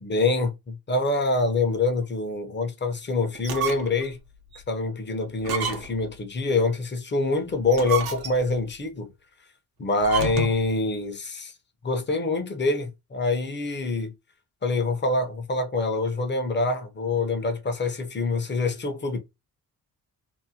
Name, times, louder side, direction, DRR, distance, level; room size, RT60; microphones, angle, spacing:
voice 1, 0.0-4.2 4.7-9.1 9.8-11.5 11.8-14.1 14.6-19.2, left 3 dB, 30° left, 0.7 m, -25 dB
sound 1, 3.3-4.1 4.5-4.6 5.4-6.1 7.6-8.6 10.0-10.7, right 7 dB, 75° right, 0.8 m, -30 dB
2.7 x 2.1 x 2.7 m
cardioid pair, 85°, 37 cm